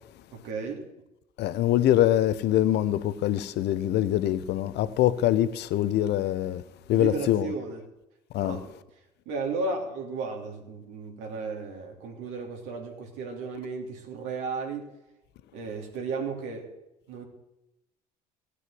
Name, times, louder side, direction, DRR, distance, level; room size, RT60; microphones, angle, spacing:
voice 1, 0.3-0.8 6.9-7.8 8.4-8.7 9.2-14.9 15.5-16.7 17.1-17.2, right 4 dB, 70° right, 3.2 m, -34 dB
voice 2, 1.4-6.6 6.9-7.5 8.3-8.6, left 12 dB, 55° left, 0.9 m, -24 dB
16.5 x 8.2 x 7.7 m
hypercardioid pair, 60°, 20 cm